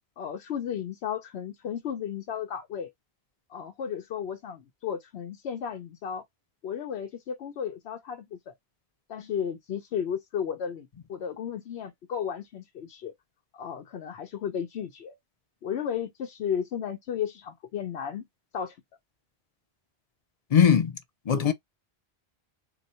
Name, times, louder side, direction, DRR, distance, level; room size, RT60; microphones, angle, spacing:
voice 1, 0.2-2.9 3.5-6.2 6.6-8.5 9.1-13.1 13.5-15.2 15.6-18.3 18.5-18.8, left 8 dB, 75° left, 0.9 m, -34 dB
voice 2, 20.5-21.0 21.3-21.5, left 8 dB, 45° left, 0.5 m, -20 dB
4.0 x 2.2 x 4.2 m
omnidirectional pair, 1.1 m